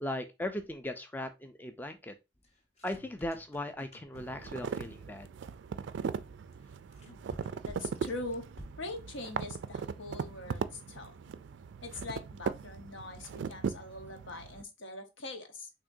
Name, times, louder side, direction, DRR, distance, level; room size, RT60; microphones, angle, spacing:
voice 1, 0.0-2.1 2.8-5.3, left 1 dB, 10° left, 0.3 m, -38 dB
sound 1, 2.4-4.9 6.5-9.0, equal, 35° left, 0.9 m, -52 dB
sound 2, 4.1-14.6, right 6 dB, 75° right, 0.3 m, -39 dB
voice 2, 7.6-8.4 8.8-11.2 11.8-15.7, left 2 dB, 85° left, 1.0 m, -42 dB
6.2 x 2.9 x 2.6 m
head